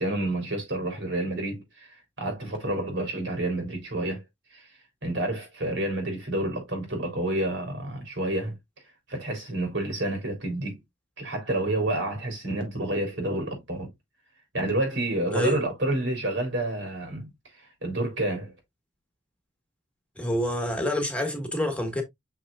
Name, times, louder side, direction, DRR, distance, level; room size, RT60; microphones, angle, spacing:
voice 1, 0.0-4.2 4.5-4.7 5.0-8.6 9.1-10.8 11.2-13.9 14.5-17.3 17.8-18.5, right 1 dB, 70° right, 3.6 m, -29 dB
voice 2, 20.2-22.0, left 1 dB, 5° left, 1.5 m, -27 dB
6.6 x 6.0 x 2.5 m
head